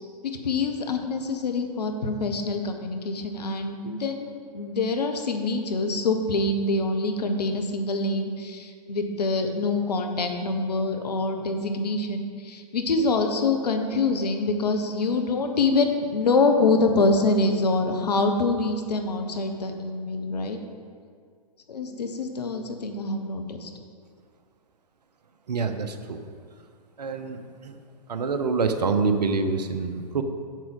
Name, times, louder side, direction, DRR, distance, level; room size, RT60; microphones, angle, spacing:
voice 1, 0.2-20.6 21.7-23.7, left 3 dB, 70° left, 5 dB, 1.1 m, -25 dB
voice 2, 25.5-26.2 27.0-27.8 28.1-30.2, right 4 dB, 70° right, 7 dB, 0.9 m, -26 dB
7.6 x 7.4 x 5.4 m, 2.1 s
figure-of-eight pair, 110°, 21 cm